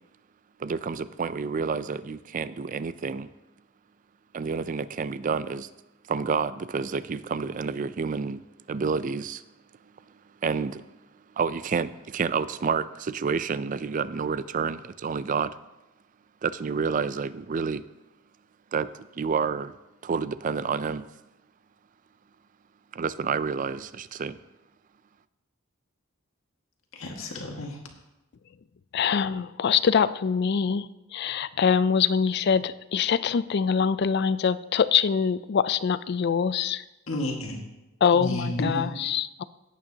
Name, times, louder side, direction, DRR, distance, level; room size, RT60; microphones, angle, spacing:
voice 1, 0.6-3.3 4.3-5.7 6.1-9.4 10.4-10.8 11.4-15.6 16.4-17.8 18.7-18.9 19.2-19.8 20.0-21.1 22.9-24.4, right 5 dB, 40° right, 15 dB, 0.4 m, -29 dB
voice 2, 26.9-27.8 37.1-37.6 38.1-39.1, left 1 dB, 70° left, 1 dB, 1.8 m, -31 dB
voice 3, 28.9-30.9 31.1-36.8 38.0-39.4, left 6 dB, 50° left, 15 dB, 0.4 m, -24 dB
17.0 x 8.7 x 2.8 m, 0.99 s
head